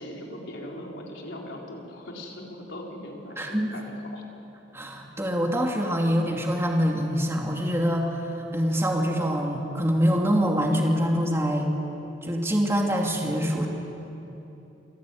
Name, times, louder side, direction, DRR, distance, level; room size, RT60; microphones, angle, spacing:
voice 1, 0.0-3.9 4.1-4.2, left 1 dB, 75° left, -1 dB, 4.3 m, -39 dB
voice 2, 3.4-3.8 4.7-11.7 12.2-13.7, equal, 15° right, 0 dB, 2.5 m, -25 dB
27.5 x 16.5 x 9.4 m, 3.0 s
head